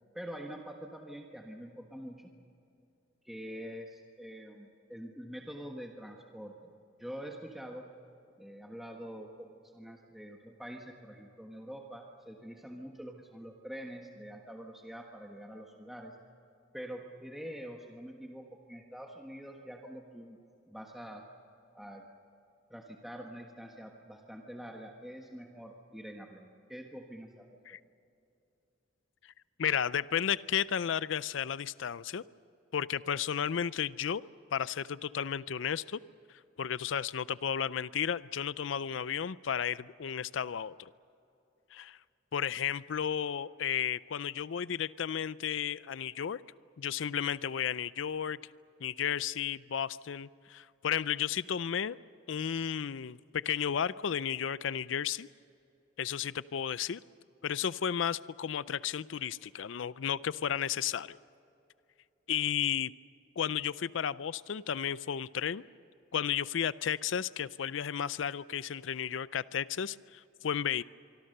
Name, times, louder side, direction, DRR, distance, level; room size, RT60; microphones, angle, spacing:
voice 1, 0.1-2.3 3.2-6.7 7.0-7.9 8.4-16.1 16.7-20.4 20.7-21.3 21.7-22.1 22.7-27.8, equal, ahead, 1 dB, 1.4 m, -45 dB
voice 2, 29.6-32.2 32.7-34.2 34.5-36.0 36.6-40.9 41.7-42.0 42.3-46.4 46.8-48.4 48.8-52.0 52.3-55.3 56.0-57.0 57.4-61.2 62.3-62.9 63.4-65.6 66.1-70.8, left 8 dB, 75° left, 17 dB, 0.5 m, -33 dB
25.0 x 25.0 x 6.7 m, 2.8 s
head